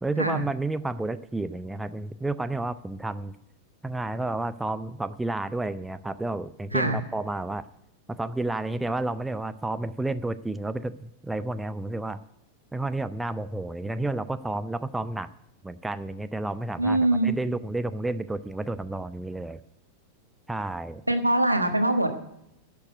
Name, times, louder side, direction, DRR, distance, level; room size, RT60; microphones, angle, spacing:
voice 1, 0.0-3.3 3.8-7.7 8.1-12.2 12.7-15.3 15.6-19.6 20.5-21.0, right 2 dB, 5° right, 12 dB, 0.5 m, -31 dB
voice 2, 16.8-17.3 21.1-22.1, right 1 dB, 85° right, 7 dB, 1.2 m, -23 dB
11.5 x 7.0 x 9.2 m, 0.80 s
figure-of-eight pair, 90°, 0 cm